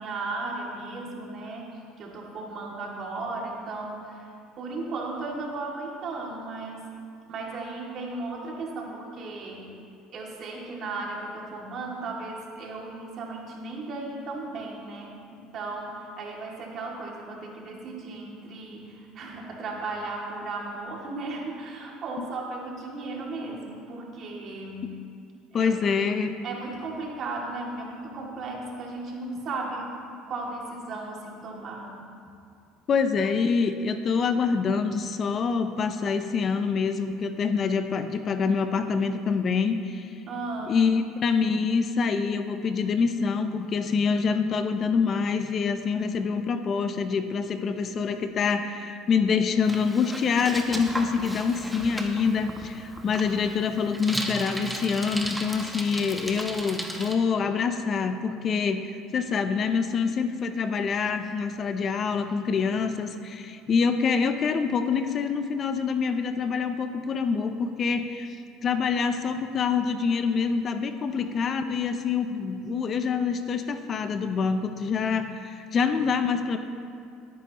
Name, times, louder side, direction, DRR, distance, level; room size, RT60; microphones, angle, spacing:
voice 1, 0.0-1.7 2.0-4.3 4.6-6.9 7.3-9.7 10.1-25.0 25.5-25.7 26.4-29.9 30.3-31.9 40.3-40.8 71.0-71.2, right 3 dB, 50° right, -2 dB, 2.5 m, -35 dB
voice 2, 25.5-26.3 32.9-40.1 40.7-68.3 68.6-76.6, left 5 dB, 40° left, 8 dB, 0.6 m, -26 dB
Bicycle, 49.6-57.1, right 1 dB, 5° right, 1.1 m, -35 dB
18.0 x 9.5 x 3.1 m, 2.4 s
supercardioid pair, 105°, 0 cm